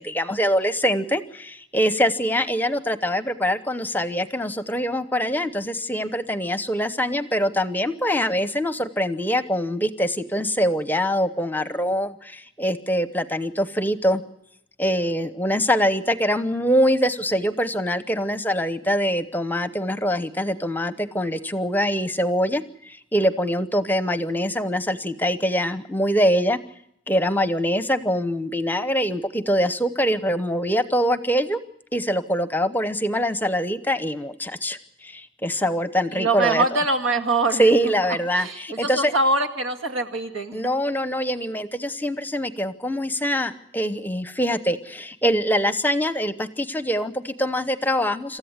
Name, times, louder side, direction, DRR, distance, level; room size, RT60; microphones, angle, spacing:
voice 1, 0.0-14.2 14.8-26.6 27.1-31.6 31.9-36.6 37.6-39.1 40.5-48.4, equal, 10° left, 12 dB, 0.8 m, -24 dB
voice 2, 36.1-37.6 38.3-40.7, right 2 dB, 80° right, 6 dB, 2.2 m, -23 dB
27.5 x 14.0 x 8.0 m, 0.75 s
head